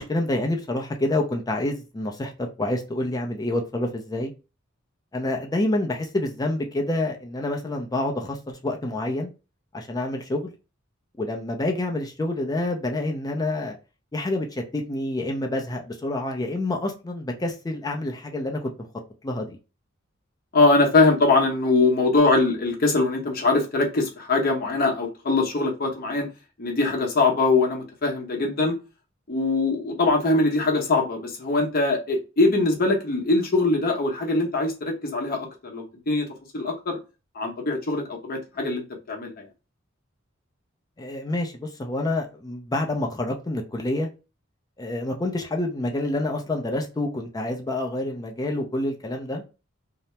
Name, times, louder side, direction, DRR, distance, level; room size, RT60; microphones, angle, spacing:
voice 1, 0.0-2.3 2.6-4.3 5.1-9.3 9.7-10.5 11.2-13.8 14.1-18.9 19.2-19.6 41.0-44.1 44.8-49.4, left 1 dB, 20° left, 0.4 m, -27 dB
voice 2, 20.5-26.3 26.6-28.8 29.3-36.3 36.5-37.0 37.3-39.5, left 3 dB, 50° left, 0.8 m, -22 dB
2.8 x 2.0 x 3.1 m
head